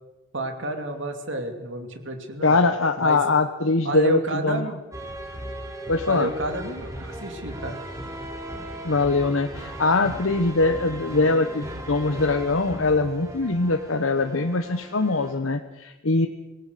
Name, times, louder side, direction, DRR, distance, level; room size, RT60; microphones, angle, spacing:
voice 1, 0.3-2.6 3.0-3.2 3.8-4.8 6.1-7.8, right 1 dB, 65° right, 5 dB, 2.7 m, -30 dB
voice 2, 2.4-4.7 5.9-6.3 8.8-16.3, left 3 dB, 75° left, 6 dB, 1.1 m, -22 dB
sound 1, 4.9-15.4, right 1 dB, 15° right, 3.0 m, -37 dB
25.5 x 18.0 x 6.8 m, 1.0 s
head